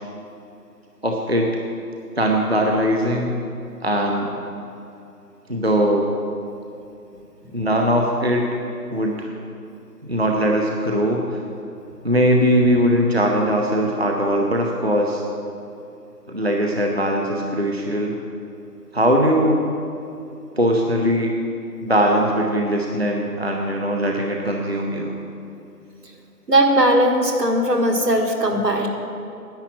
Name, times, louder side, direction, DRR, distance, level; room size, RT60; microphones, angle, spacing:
voice 1, 1.0-1.5 2.2-3.3 3.8-4.3 5.5-6.1 7.5-8.5 8.9-9.3 10.0-11.4 12.0-15.2 16.3-18.1 18.9-19.6 20.6-21.3 21.8-25.2, equal, 40° right, 0 dB, 0.7 m, -20 dB
voice 2, 26.5-28.9, right 1 dB, 80° right, 2 dB, 1.8 m, -18 dB
10.5 x 8.1 x 6.0 m, 2.7 s
figure-of-eight pair, 180°, 47 cm